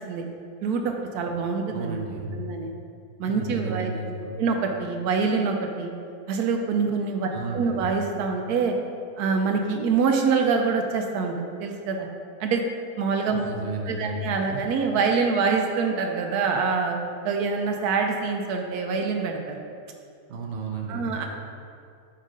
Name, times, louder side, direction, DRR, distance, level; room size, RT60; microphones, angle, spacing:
voice 1, 0.6-2.0 2.3-2.7 3.2-3.9 4.4-5.9 6.3-8.7 9.2-11.3 11.6-12.1 12.4-12.6 13.0-13.6 13.9-17.0 17.2-19.6 20.9-21.3, right 5 dB, 80° right, 3 dB, 1.1 m, -25 dB
voice 2, 1.7-2.4 3.3-4.4 7.3-7.8 13.4-14.6 20.3-21.2, right 3 dB, 55° right, 0 dB, 0.8 m, -33 dB
5.4 x 3.9 x 4.9 m, 2.4 s
omnidirectional pair, 1.6 m